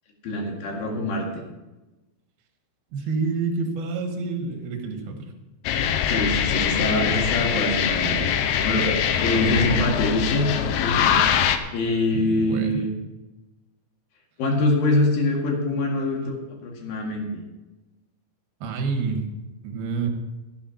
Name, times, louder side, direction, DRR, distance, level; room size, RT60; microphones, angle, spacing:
voice 1, 0.2-1.4 6.1-10.5 10.8-11.3 11.7-12.9 14.4-17.4, left 2 dB, 65° left, 0 dB, 3.8 m, -24 dB
voice 2, 2.9-5.3 12.1-12.9 18.6-19.2 19.6-20.1, right 4 dB, 75° right, 4 dB, 3.4 m, -28 dB
sound 1, 5.7-11.6, left 8 dB, 85° left, 2.7 m, -23 dB
14.5 x 8.2 x 5.8 m, 1.1 s
omnidirectional pair, 4.5 m